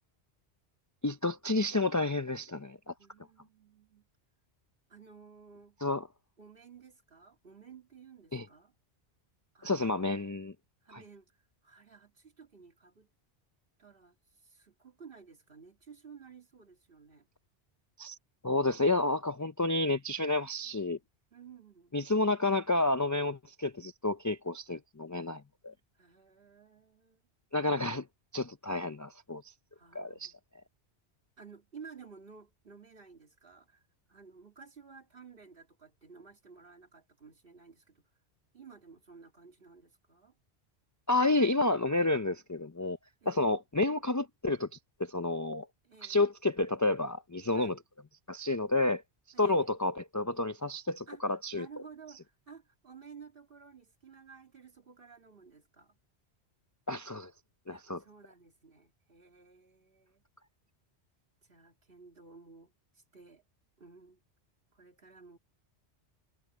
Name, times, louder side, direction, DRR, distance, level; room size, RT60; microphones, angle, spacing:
voice 1, 1.0-2.9 5.8-6.1 8.3-8.5 9.6-10.5 10.9-11.0 18.0-18.2 18.4-21.0 21.9-25.7 27.5-28.1 28.3-29.4 29.9-30.3 41.1-43.0 43.3-44.7 45.0-45.7 46.0-47.8 48.3-49.0 49.4-51.7 56.9-57.3 57.7-58.0, left 2 dB, 25° left, 0.4 m, -30 dB
voice 2, 3.0-4.1 4.9-5.8 6.4-8.7 9.5-9.9 10.8-11.3 11.6-13.1 13.8-14.2 14.4-17.3 20.6-20.8 21.3-22.0 26.0-27.2 28.6-28.8 29.7-30.3 31.4-33.8 34.1-38.0 38.5-40.4 43.2-43.6 45.8-46.2 47.5-47.8 49.3-49.7 51.1-56.0 57.7-60.2 61.5-63.4 63.8-64.2 64.7-65.4, right 5 dB, 55° right, 2.6 m, -54 dB
omnidirectional pair, 1.1 m